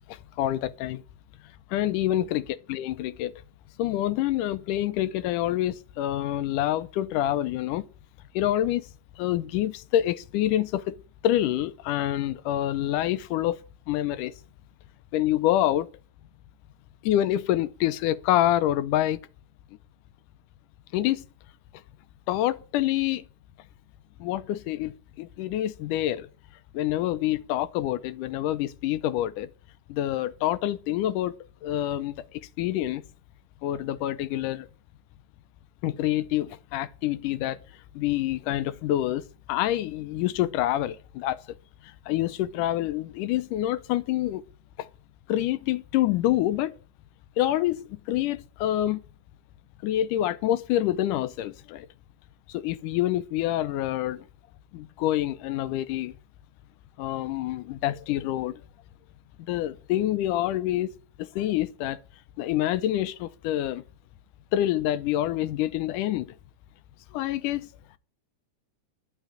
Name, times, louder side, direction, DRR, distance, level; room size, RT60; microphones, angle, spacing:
voice 1, 0.1-1.0 1.7-3.3 3.8-7.9 8.3-8.9 9.2-11.0 11.2-13.6 13.9-14.3 15.1-15.9 17.0-19.2 20.9-21.2 22.3-23.2 24.2-26.3 26.7-29.5 29.9-31.4 31.6-33.0 33.6-34.7 35.8-37.6 38.0-41.6 41.8-44.4 44.8-44.9 45.3-46.7 47.4-49.0 49.8-51.9 52.5-54.3 54.7-56.2 57.0-58.6 59.5-62.0 62.4-63.8 64.5-66.4 67.1-67.7, left 13 dB, 80° left, 2.2 m, -27 dB
11.5 x 6.1 x 9.3 m
omnidirectional pair, 3.8 m